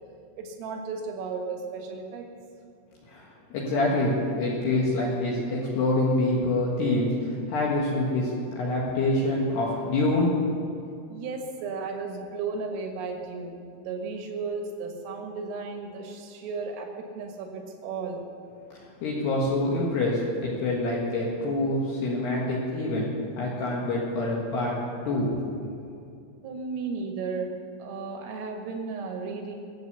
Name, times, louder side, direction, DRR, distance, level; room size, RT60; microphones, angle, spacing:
voice 1, 0.4-2.3 11.1-18.2 26.4-27.5 27.8-29.6, right 4 dB, 85° right, 2 dB, 4.2 m, -34 dB
voice 2, 3.1-10.3 18.7-23.1 23.4-24.8 25.1-25.3, left 2 dB, 65° left, -4 dB, 3.4 m, -26 dB
23.5 x 8.1 x 6.9 m, 2.5 s
omnidirectional pair, 5.8 m